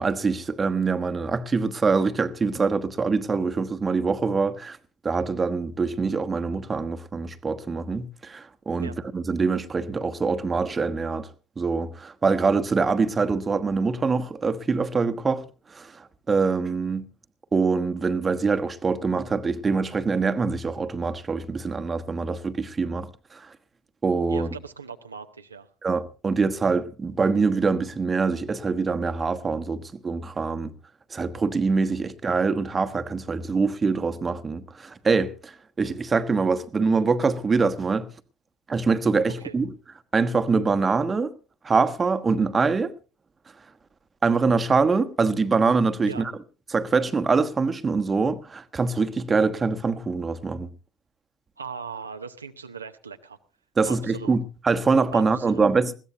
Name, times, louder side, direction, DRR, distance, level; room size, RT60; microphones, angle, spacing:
voice 1, 0.0-4.8 5.0-11.3 11.6-15.4 15.7-17.1 17.5-23.5 24.0-24.5 25.8-30.7 31.1-38.1 38.7-39.7 40.1-41.3 41.6-42.9 44.2-46.3 46.7-50.7 53.8-55.9, right 4 dB, 25° right, 1.2 m, -24 dB
voice 2, 24.3-25.7 39.4-39.5 46.0-46.3 51.6-53.4 53.8-54.3 55.1-55.7, right 6 dB, 85° right, 0.7 m, -38 dB
21.0 x 16.0 x 2.8 m
figure-of-eight pair, 60°, 0 cm